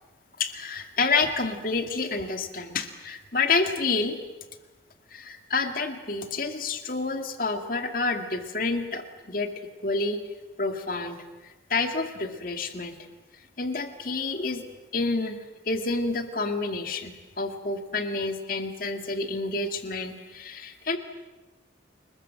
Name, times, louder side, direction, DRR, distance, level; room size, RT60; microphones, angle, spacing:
voice 1, 0.4-4.2 5.1-9.5 9.8-10.2 10.6-13.0 13.6-14.6 14.9-21.0, left 3 dB, 50° left, 6 dB, 2.2 m, -29 dB
29.0 x 21.0 x 7.6 m, 1.2 s
head